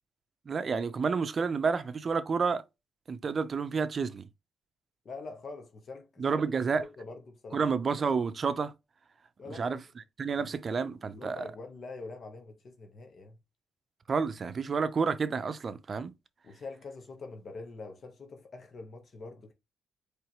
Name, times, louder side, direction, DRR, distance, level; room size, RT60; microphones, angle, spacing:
voice 1, 0.5-2.6 3.1-4.3 6.2-6.9 7.5-8.7 9.5-9.8 10.2-11.4 14.1-16.1, right 5 dB, 40° right, 0.6 m, -30 dB
voice 2, 5.0-6.4 6.8-7.6 9.4-9.8 10.3-10.8 11.1-13.4 16.4-19.5, left 3 dB, 50° left, 1.3 m, -45 dB
4.6 x 3.3 x 3.0 m
cardioid pair, 90°, 0 cm